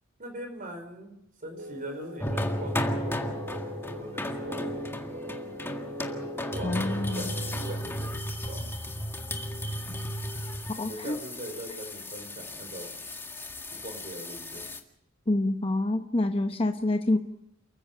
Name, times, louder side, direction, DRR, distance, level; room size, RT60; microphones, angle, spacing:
voice 1, 0.2-1.1 1.4-5.2 6.4-8.1 8.4-8.6 10.8-13.0 13.8-14.7, right 1 dB, 45° right, 6 dB, 4.9 m, -41 dB
sound 1, 1.6-7.8, left 1 dB, 70° right, 2.1 m, -41 dB
sound 2, 2.2-14.8, equal, 10° left, 1.8 m, -34 dB
voice 2, 6.6-7.3 10.7-11.2 15.3-17.2, left 2 dB, 25° left, 6 dB, 0.9 m, -27 dB
29.0 x 15.0 x 6.8 m, 0.79 s
head